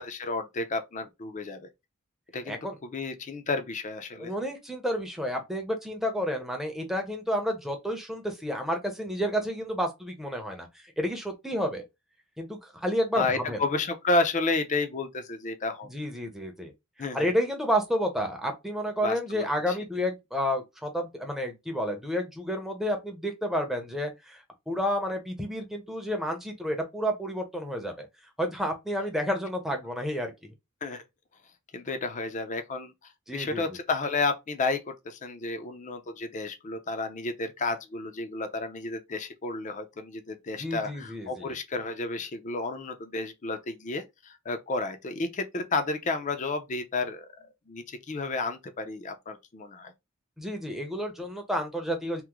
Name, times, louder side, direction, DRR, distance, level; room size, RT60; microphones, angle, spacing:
voice 1, 0.0-1.7 2.3-4.3 13.1-15.9 17.0-17.3 19.0-19.8 30.8-31.0 31.7-32.9 33.3-47.3 47.7-49.9, left 3 dB, 35° left, 0.5 m, -31 dB
voice 2, 4.2-11.8 12.4-13.6 15.9-16.7 17.1-28.1 28.4-30.3 33.3-33.6 40.6-41.5 50.4-52.2, equal, ahead, 0.6 m, -30 dB
3.0 x 2.0 x 3.5 m
head